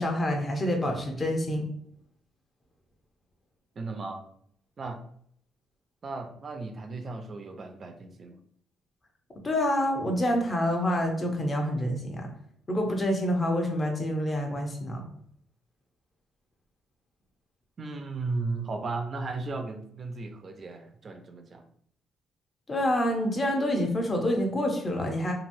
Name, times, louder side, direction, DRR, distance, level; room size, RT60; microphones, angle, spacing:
voice 1, 0.0-1.7 9.4-12.3 12.7-15.0 22.7-25.3, left 1 dB, 30° left, 2 dB, 0.7 m, -27 dB
voice 2, 3.8-4.2 4.8-5.0 6.0-8.4 17.8-21.6, right 3 dB, 45° right, 6 dB, 0.4 m, -35 dB
2.9 x 2.6 x 2.6 m, 0.65 s
cardioid pair, 90°, 0 cm